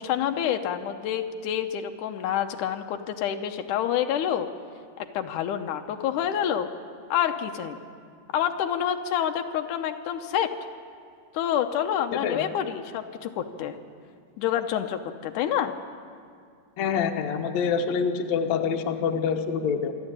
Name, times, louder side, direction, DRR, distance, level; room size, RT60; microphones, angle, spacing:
voice 1, 0.0-4.5 5.1-6.7 7.1-7.8 8.3-10.5 11.3-13.8 14.4-15.7, left 9 dB, 90° left, 6 dB, 2.4 m, -27 dB
voice 2, 12.1-12.5 16.8-19.9, left 6 dB, 70° left, 5 dB, 2.2 m, -26 dB
26.0 x 12.5 x 8.9 m, 2.2 s
omnidirectional pair, 3.5 m